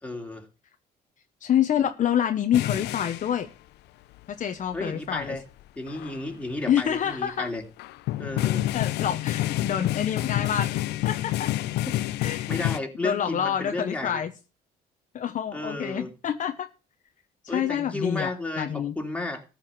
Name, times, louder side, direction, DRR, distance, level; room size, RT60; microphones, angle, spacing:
voice 1, 0.0-0.5 4.7-5.4 5.8-7.6 8.2-8.7 12.5-14.2 15.5-16.1 17.5-19.4, left 2 dB, 5° left, 3 dB, 2.9 m, -33 dB
voice 2, 1.4-3.5 4.3-5.4 6.7-7.5 8.7-11.5 12.2-12.5 13.0-14.3 15.1-16.7 17.4-18.3 18.6-18.9, left 9 dB, 50° left, 7 dB, 1.1 m, -27 dB
sound 1, 2.5-3.4 4.7-4.8 5.3-5.4 5.9-6.2 7.8-12.8, left 15 dB, 80° left, 0.6 m, -28 dB
14.0 x 5.2 x 8.7 m, 0.33 s
cardioid pair, 110°, 17 cm